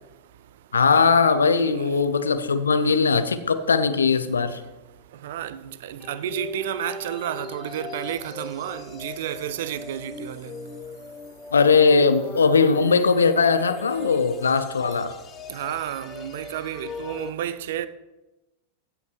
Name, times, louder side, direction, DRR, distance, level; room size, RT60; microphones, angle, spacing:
voice 1, 0.7-4.6 11.5-15.1, left 5 dB, 70° left, 0.7 m, -19 dB
voice 2, 5.2-10.5 15.5-17.9, right 11 dB, 55° right, 0.5 m, -31 dB
sound 1, 6.0-17.3, left 4 dB, 30° left, 0.9 m, -39 dB
15.5 x 5.7 x 4.6 m
figure-of-eight pair, 90°, 0 cm